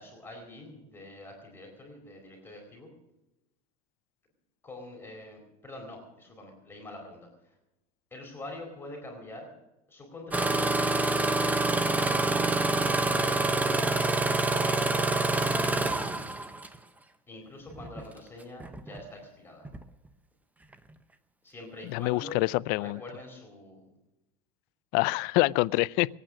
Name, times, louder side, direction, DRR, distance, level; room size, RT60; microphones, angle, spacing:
voice 1, 0.0-2.9 4.6-7.5 8.1-9.5 9.9-10.9 11.3-13.2 13.7-14.9 15.3-16.0 17.3-19.7 21.4-22.4 22.8-23.9, left 2 dB, 10° left, 0 dB, 4.3 m, -45 dB
Engine starting, 10.3-16.8 17.7-18.0 18.6-19.0 19.6-19.8, right 2 dB, 10° right, 0.9 m, -26 dB
voice 2, 21.9-23.0 24.9-26.1, left 22 dB, 60° left, 20 dB, 0.4 m, -26 dB
21.5 x 9.1 x 6.3 m, 0.94 s
supercardioid pair, 140°, 18 cm